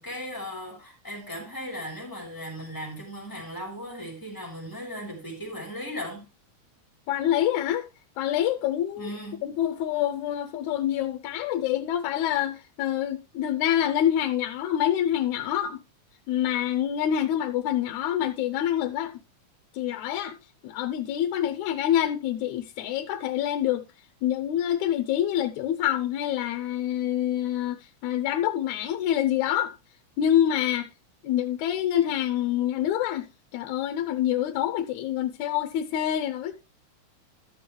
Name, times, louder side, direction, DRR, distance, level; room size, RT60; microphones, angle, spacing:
voice 1, 0.0-6.2 9.0-9.4, equal, 5° left, 3.6 m, -37 dB
voice 2, 7.1-7.9 8.2-9.1 9.4-15.8 16.3-19.1 19.7-20.4 20.6-23.8 24.2-27.8 28.0-29.7 30.2-30.9 31.2-33.3 33.5-36.6, left 11 dB, 75° left, 2.0 m, -26 dB
13.0 x 6.9 x 3.2 m
omnidirectional pair, 3.5 m